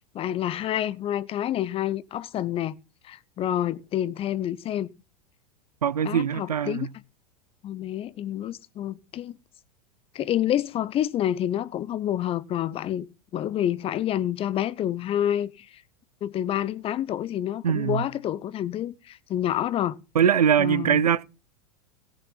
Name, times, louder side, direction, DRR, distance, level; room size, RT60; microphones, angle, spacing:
voice 1, 0.1-2.8 3.0-4.9 6.0-6.9 7.6-9.4 10.1-13.1 13.3-15.7 16.2-20.0 20.6-21.0, left 11 dB, 30° left, 0.7 m, -28 dB
voice 2, 5.8-6.9 17.6-18.1 20.1-21.2, right 8 dB, 75° right, 0.7 m, -22 dB
17.5 x 7.2 x 3.9 m
figure-of-eight pair, 85°, 20 cm